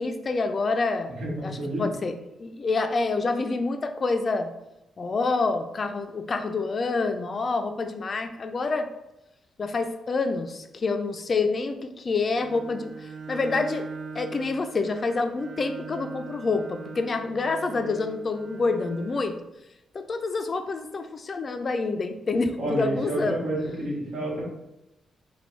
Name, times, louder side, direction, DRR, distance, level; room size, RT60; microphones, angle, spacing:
voice 1, 0.0-2.1 2.4-4.5 5.0-8.9 9.6-12.9 13.3-13.9 14.1-19.4 19.9-23.5, left 3 dB, 40° left, 7 dB, 0.3 m, -27 dB
voice 2, 1.2-1.8 22.6-24.5, right 1 dB, 85° right, -4 dB, 1.2 m, -29 dB
Bowed string instrument, 12.3-19.4, right 4 dB, 70° right, 0.3 m, -42 dB
3.2 x 2.2 x 3.1 m, 0.91 s
cardioid pair, 115°, 0 cm